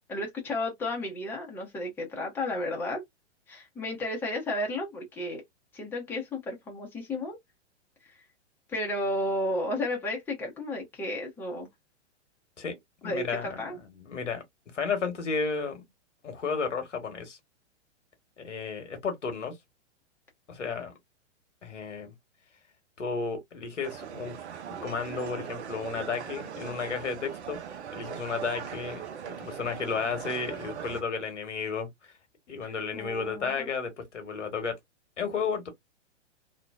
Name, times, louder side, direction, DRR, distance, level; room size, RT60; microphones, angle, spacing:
voice 1, 0.1-3.0 3.5-5.4 5.7-7.4 8.0-8.2 8.7-11.7 13.0-13.8 32.6-33.7, left 1 dB, 5° left, 0.6 m, -33 dB
voice 2, 13.0-14.4 14.7-15.9 16.2-17.4 18.4-19.6 20.5-20.9 21.6-22.1 23.0-24.4 24.8-27.6 27.9-31.9 32.5-34.8 35.2-35.7, left 5 dB, 80° left, 1.1 m, -33 dB
sound 1, 23.8-31.0, right 8 dB, 65° right, 0.6 m, -40 dB
2.7 x 2.2 x 2.3 m
figure-of-eight pair, 115°, 36 cm